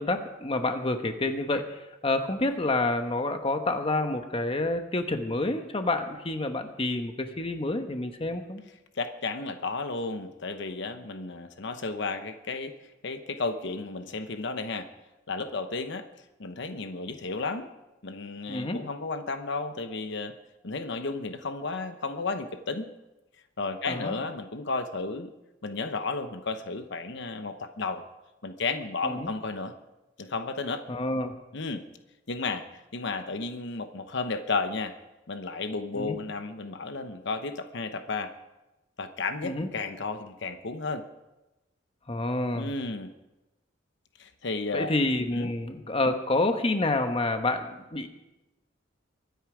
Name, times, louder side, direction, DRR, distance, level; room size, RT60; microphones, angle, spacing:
voice 1, 0.0-8.6 18.5-18.8 23.9-24.2 29.0-29.3 30.9-31.4 35.9-36.2 39.4-39.7 42.1-42.7 44.7-48.1, left 2 dB, 30° left, 7 dB, 1.1 m, -28 dB
voice 2, 8.9-12.7 13.0-14.9 15.3-16.0 16.4-17.7 18.0-20.3 20.6-22.9 23.6-25.3 25.6-28.0 28.4-29.7 30.2-30.8 31.5-31.8 32.3-35.0 35.3-38.3 39.0-41.0 42.5-43.1 44.2-45.0 45.3-45.5, left 3 dB, 65° left, 8 dB, 1.0 m, -33 dB
23.5 x 9.4 x 5.0 m, 0.99 s
head